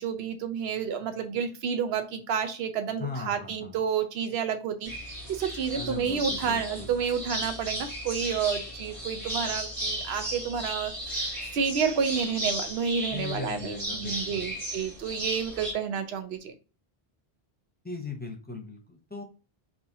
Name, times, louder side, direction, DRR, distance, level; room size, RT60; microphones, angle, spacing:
voice 1, 0.0-16.5, right 6 dB, 80° right, 8 dB, 0.9 m, -30 dB
voice 2, 3.0-3.8 5.7-7.0 13.1-14.5 17.8-19.2, left 4 dB, 10° left, 1 dB, 0.7 m, -38 dB
sound 1, 4.8-15.7, right 1 dB, 30° right, 1.3 m, -35 dB
4.7 x 2.7 x 2.7 m, 0.33 s
omnidirectional pair, 1.0 m